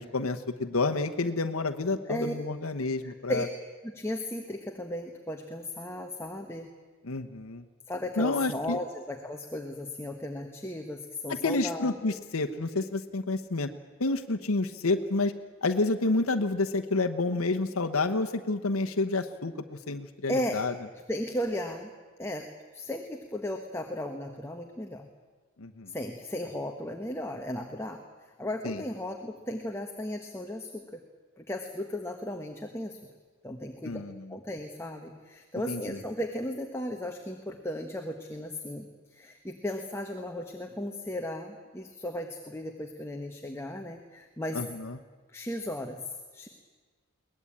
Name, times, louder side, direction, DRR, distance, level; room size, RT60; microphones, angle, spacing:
voice 1, 0.0-3.5 7.0-7.6 8.2-8.8 11.4-13.7 14.0-15.3 15.6-20.7 25.6-25.9 28.6-28.8 33.8-34.3 35.7-36.0 44.5-45.0, left 3 dB, 80° left, 5 dB, 1.1 m, -29 dB
voice 2, 3.0-3.4 3.9-6.7 7.9-12.2 20.3-20.6 21.1-21.9 22.2-22.5 22.7-25.1 25.9-28.0 28.4-31.0 31.4-33.0 33.4-34.0 34.3-38.9 39.1-44.6 45.3-46.5, left 1 dB, 10° left, 3 dB, 1.3 m, -35 dB
22.5 x 18.5 x 8.8 m, 1.4 s
head